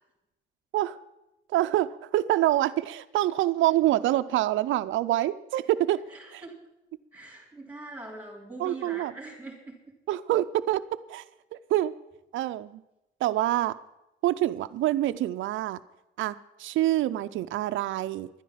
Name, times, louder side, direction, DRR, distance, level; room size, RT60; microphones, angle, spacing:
voice 1, 1.5-6.0 6.3-6.4 8.6-9.1 10.1-10.8 11.1-11.2 11.7-11.9 12.3-12.8 13.2-13.7 14.2-15.8 16.2-18.3, right 14 dB, 80° right, 11 dB, 0.5 m, -26 dB
voice 2, 6.1-6.6 7.1-9.8, right 2 dB, 10° right, -4 dB, 3.5 m, -42 dB
11.0 x 10.0 x 7.3 m, 0.93 s
cardioid pair, 90°, 20 cm